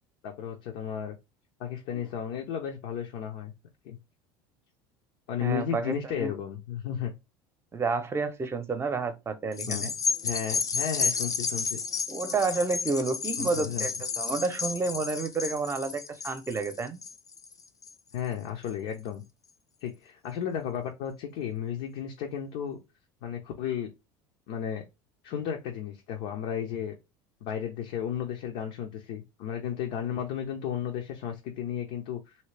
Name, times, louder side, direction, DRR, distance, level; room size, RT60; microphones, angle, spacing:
voice 1, 0.2-1.2 1.6-3.5 3.8-4.0 5.3-7.1 9.7-9.9 10.2-11.8 13.4-13.9 18.1-19.2 19.8-22.8 23.2-23.9 24.5-24.8 25.2-26.9 27.4-32.4, left 9 dB, 70° left, 0.7 m, -34 dB
voice 2, 5.4-6.3 7.7-9.9 12.1-13.9 14.2-17.0, right 4 dB, 20° right, 0.7 m, -30 dB
sound 1, 9.5-18.2 18.7-18.8, left 5 dB, 30° left, 0.5 m, -32 dB
2.8 x 2.7 x 3.3 m
supercardioid pair, 95°, 12 cm